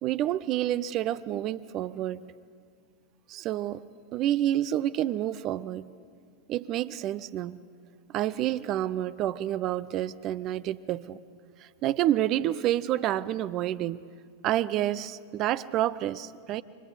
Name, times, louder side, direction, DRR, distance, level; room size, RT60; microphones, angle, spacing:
voice 1, 0.0-2.3 3.3-3.8 4.1-5.9 6.5-7.6 8.1-11.2 11.6-14.0 14.4-16.6, right 12 dB, 35° right, 16 dB, 0.6 m, -29 dB
28.5 x 24.0 x 7.0 m, 2.2 s
figure-of-eight pair, 90°, 0 cm